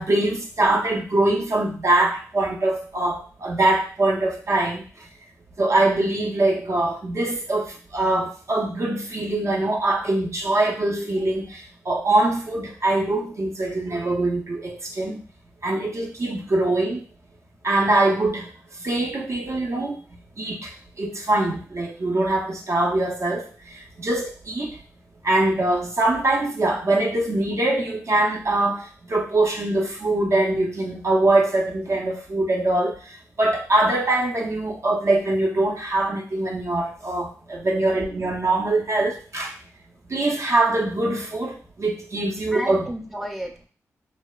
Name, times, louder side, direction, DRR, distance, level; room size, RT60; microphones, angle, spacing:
voice 1, 0.0-4.8 5.6-15.2 15.6-17.0 17.6-18.5 18.8-20.0 20.4-20.7 21.0-24.8 25.2-33.0 33.4-39.5 40.1-42.9, right 2 dB, 55° right, 0 dB, 0.6 m, -23 dB
voice 2, 42.5-43.7, equal, ahead, 2 dB, 0.5 m, -33 dB
2.8 x 2.1 x 2.3 m, 0.38 s
cardioid pair, 45°, 6 cm